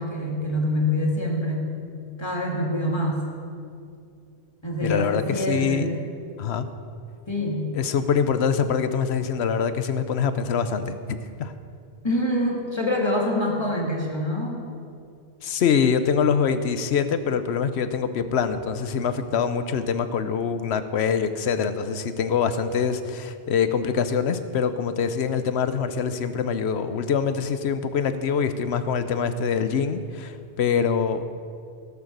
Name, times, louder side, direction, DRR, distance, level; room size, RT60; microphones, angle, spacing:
voice 1, 0.0-1.7 2.2-3.2 4.6-5.9 7.3-7.7 12.0-14.6, left 1 dB, 25° left, -1 dB, 2.1 m, -25 dB
voice 2, 4.8-5.9 6.4-6.7 7.7-11.5 15.4-31.3, left 6 dB, 75° left, 11 dB, 1.0 m, -24 dB
16.5 x 7.3 x 6.7 m, 2.5 s
omnidirectional pair, 1.1 m